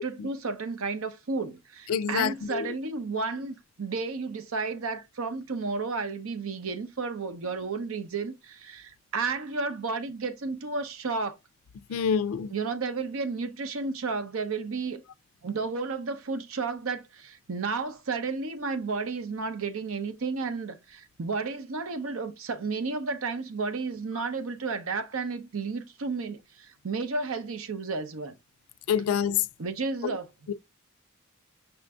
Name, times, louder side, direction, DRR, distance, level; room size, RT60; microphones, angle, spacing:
voice 1, 0.0-11.4 11.9-12.0 12.5-15.0 15.4-28.4 29.6-30.5, right 4 dB, 75° right, 0.7 m, -32 dB
voice 2, 1.9-2.7 11.9-12.5 28.9-29.4 30.5-30.6, left 7 dB, 80° left, 0.3 m, -26 dB
5.7 x 2.5 x 3.4 m
head